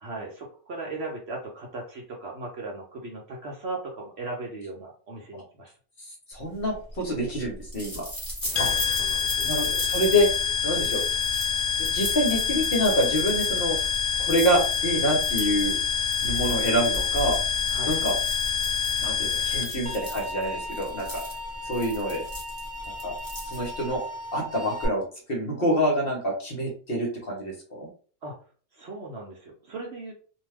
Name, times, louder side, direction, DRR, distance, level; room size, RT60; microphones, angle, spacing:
voice 1, 0.0-5.7 8.4-9.5 17.7-17.9 28.2-28.4 28.7-30.1, right 2 dB, 55° right, -1 dB, 0.8 m, -37 dB
voice 2, 6.3-8.1 8.6-8.7 9.4-10.3 10.6-11.1 11.8-13.8 14.2-15.8 16.2-17.4 17.8-18.2 19.0-21.2 21.6-22.2 22.9-23.1 23.5-24.0 24.3-25.0 25.3-27.9, equal, 45° left, 0 dB, 0.9 m, -26 dB
sound 1, 6.5-24.0, equal, 15° left, 1.2 m, -38 dB
sound 2, 8.6-20.0, left 7 dB, 80° left, 1.0 m, -26 dB
sound 3, 19.9-24.9, left 1 dB, 10° right, 0.8 m, -37 dB
2.6 x 2.2 x 3.3 m, 0.41 s
omnidirectional pair, 1.5 m